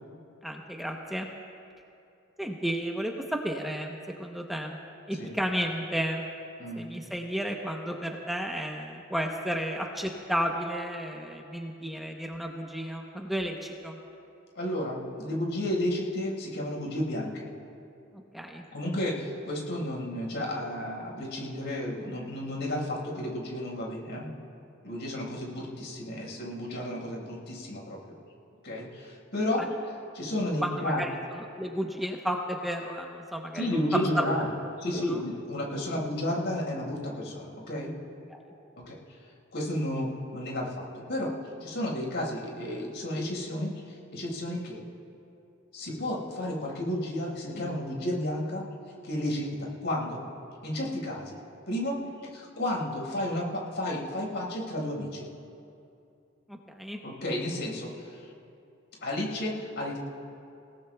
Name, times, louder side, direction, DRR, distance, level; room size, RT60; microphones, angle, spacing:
voice 1, 0.4-1.3 2.4-3.1 3.4-4.8 5.1-6.2 6.8-14.0 18.3-18.6 29.6-29.7 30.6-34.2 34.6-35.2 38.3-38.4 56.5-57.0, equal, ahead, 0 dB, 0.8 m, -33 dB
voice 2, 14.5-17.5 18.7-24.3 24.8-28.0 28.6-31.0 33.5-34.5 34.8-37.9 38.9-39.0 39.5-40.1 40.3-41.3 41.6-43.7 44.1-44.8 45.7-48.6 49.0-50.2 50.6-51.4 51.7-52.0 52.3-55.3 57.0-57.9 59.0-60.0, left 1 dB, 65° left, -2 dB, 4.8 m, -32 dB
29.0 x 18.0 x 2.3 m, 2.6 s
head